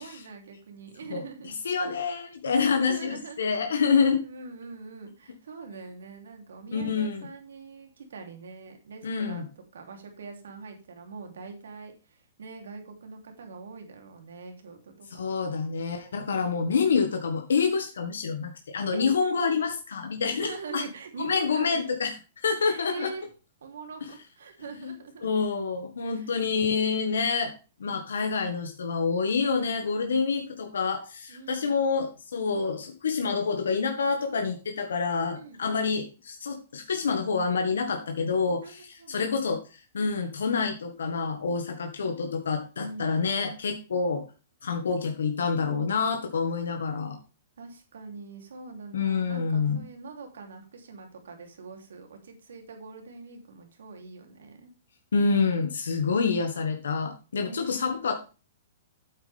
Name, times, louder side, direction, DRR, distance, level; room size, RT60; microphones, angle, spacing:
voice 1, 0.0-1.5 2.8-3.5 4.0-15.6 16.3-16.9 18.9-19.6 20.4-21.9 22.6-23.3 23.6-25.3 26.0-26.3 31.3-31.8 35.4-35.8 38.6-39.4 42.8-43.1 47.6-54.7 57.3-57.9, right 4 dB, 85° right, 4 dB, 3.2 m, -43 dB
voice 2, 1.1-4.2 6.7-7.3 9.0-9.4 15.1-20.8 21.2-22.1 22.4-23.1 24.8-24.9 25.2-27.5 27.8-44.2 44.6-47.2 48.9-49.8 55.1-58.2, left 5 dB, 90° left, 5 dB, 1.7 m, -27 dB
9.1 x 8.2 x 3.5 m, 0.32 s
hypercardioid pair, 140°, 0 cm